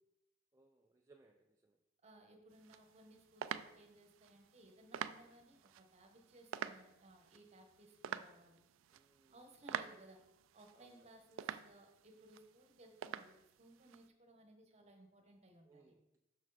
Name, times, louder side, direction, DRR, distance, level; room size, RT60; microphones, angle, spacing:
voice 1, 0.5-1.8 8.9-9.4 10.8-11.0 15.7-16.2, right 3 dB, 15° right, 1 dB, 0.4 m, -67 dB
voice 2, 2.0-8.6 9.3-10.2 10.5-15.9, right 1 dB, 35° right, 4 dB, 1.1 m, -62 dB
sound 1, 2.5-14.1, right 9 dB, 85° right, 0.3 m, -48 dB
6.2 x 6.1 x 4.0 m, 0.88 s
head